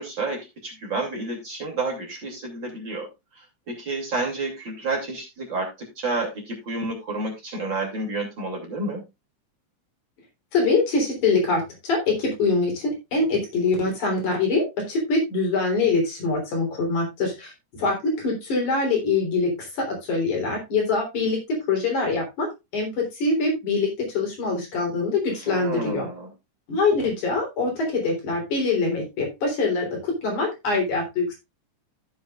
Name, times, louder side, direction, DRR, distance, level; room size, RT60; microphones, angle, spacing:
voice 1, 0.0-5.7 6.0-9.0 25.4-26.3, right 3 dB, 35° right, -1 dB, 3.3 m, -30 dB
voice 2, 10.5-22.5 22.7-26.1 26.7-31.3, left 3 dB, 70° left, 0 dB, 5.0 m, -24 dB
14.5 x 7.0 x 2.4 m, 0.23 s
omnidirectional pair, 3.6 m